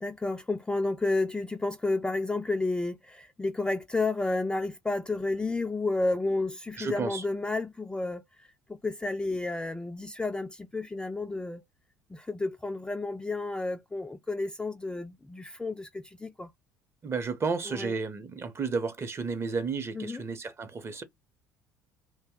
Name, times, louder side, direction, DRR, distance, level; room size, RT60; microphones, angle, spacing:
voice 1, 0.0-11.6 12.1-16.5 17.7-17.9 19.9-20.2, left 2 dB, 10° left, 0.3 m, -31 dB
voice 2, 6.8-7.2 17.0-21.0, right 4 dB, 30° right, 0.7 m, -32 dB
2.6 x 2.1 x 3.6 m
hypercardioid pair, 70°, 8 cm